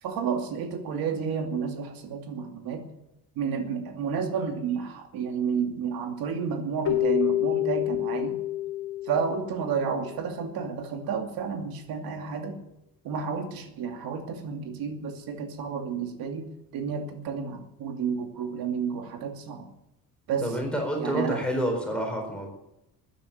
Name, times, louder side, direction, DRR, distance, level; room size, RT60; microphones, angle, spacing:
voice 1, 0.0-2.9 3.4-8.4 9.0-12.6 13.0-16.4 16.7-19.7 20.3-20.5 21.0-21.4, right 6 dB, 85° right, 4 dB, 2.6 m, -31 dB
Keyboard (musical), 6.9-10.1, left 14 dB, 85° left, 1.7 m, -28 dB
voice 2, 20.4-22.5, equal, 5° left, 1 dB, 4.4 m, -28 dB
14.0 x 9.9 x 9.3 m, 0.86 s
cardioid pair, 175°, 35 cm